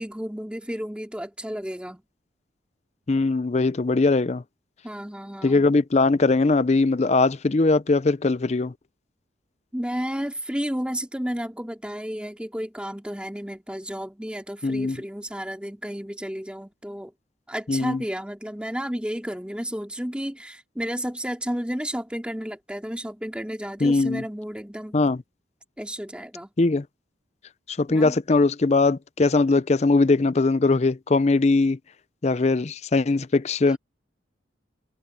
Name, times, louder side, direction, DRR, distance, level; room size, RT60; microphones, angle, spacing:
voice 1, 0.0-2.0 4.8-5.7 9.7-17.1 17.5-25.0 25.8-26.5 27.9-28.2, equal, 5° right, 3.1 m, -32 dB
voice 2, 3.1-4.4 5.4-8.7 14.6-15.0 17.7-18.0 23.8-24.2 24.9-25.2 26.6-26.9 27.7-31.8 32.2-33.8, left 3 dB, 35° left, 0.5 m, -21 dB
head